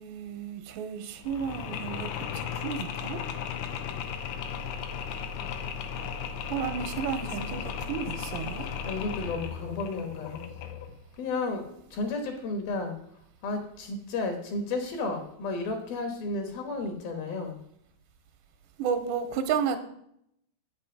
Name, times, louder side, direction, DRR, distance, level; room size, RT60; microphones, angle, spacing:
voice 1, 0.0-2.1 2.3-3.2 6.5-8.7 18.8-19.8, right 7 dB, 80° right, 8 dB, 2.9 m, -32 dB
Mechanisms, 1.2-11.0, left 7 dB, 85° left, 3.2 m, -36 dB
voice 2, 8.6-10.4 11.2-13.0 13.4-17.6, left 3 dB, 65° left, 4 dB, 2.7 m, -33 dB
8.5 x 7.7 x 5.3 m, 0.73 s
omnidirectional pair, 5.1 m